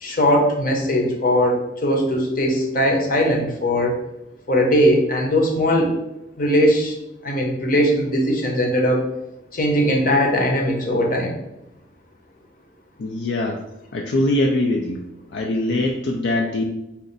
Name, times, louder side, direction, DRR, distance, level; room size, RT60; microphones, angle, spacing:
voice 1, 0.0-3.9 4.5-6.0 6.4-7.0 7.2-9.0 9.5-11.3, equal, 50° left, 1 dB, 0.8 m, -19 dB
voice 2, 13.0-13.6 13.9-15.0 15.3-16.6, left 1 dB, 75° left, 0 dB, 0.4 m, -22 dB
4.2 x 2.5 x 3.9 m, 0.90 s
head